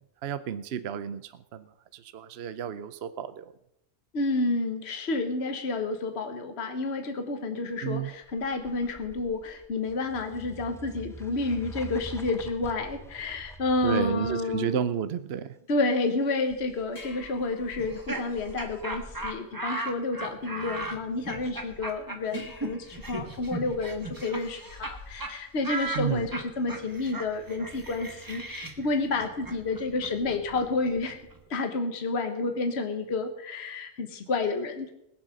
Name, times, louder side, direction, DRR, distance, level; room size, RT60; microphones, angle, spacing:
voice 1, 0.0-3.5 7.8-8.1 13.8-15.6 25.9-26.3, right 9 dB, 60° right, 12 dB, 0.8 m, -32 dB
voice 2, 4.1-14.8 15.7-31.2 31.5-34.9, left 3 dB, 55° left, 6 dB, 1.4 m, -30 dB
sound 1, 8.0-14.6 17.2-19.3, right 1 dB, 5° left, 0.6 m, -45 dB
sound 2, 16.5-26.5, left 2 dB, 80° left, 4.0 m, -52 dB
Laughter, 17.8-24.9 25.2-25.3 25.6-31.4, right 2 dB, 15° right, 1.3 m, -37 dB
20.0 x 7.5 x 6.4 m, 0.82 s
omnidirectional pair, 1.3 m